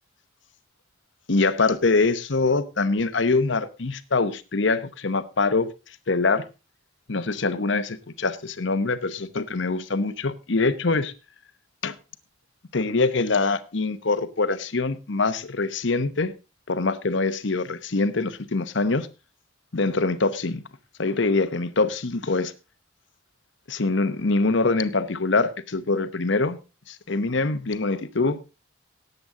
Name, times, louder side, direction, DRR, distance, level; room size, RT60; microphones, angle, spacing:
voice 1, 1.3-5.7 6.1-6.4 7.1-11.1 11.8-11.9 12.7-16.3 16.7-19.1 19.7-20.6 21.0-22.5 23.7-26.6 26.9-28.4, left 3 dB, 65° left, 0.9 m, -24 dB
18.0 x 7.9 x 3.7 m
head